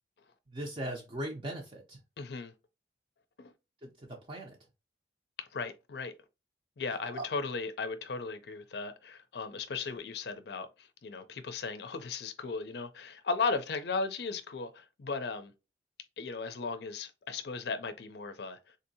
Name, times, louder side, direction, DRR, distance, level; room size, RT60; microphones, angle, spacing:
voice 1, 0.5-2.0 3.8-4.6 7.1-7.2, right 1 dB, 30° right, 0.5 m, -39 dB
voice 2, 2.2-2.5 3.4-3.5 5.4-6.1 6.8-15.5 16.2-18.6, left 4 dB, 65° left, 0.5 m, -36 dB
3.8 x 2.7 x 2.7 m
head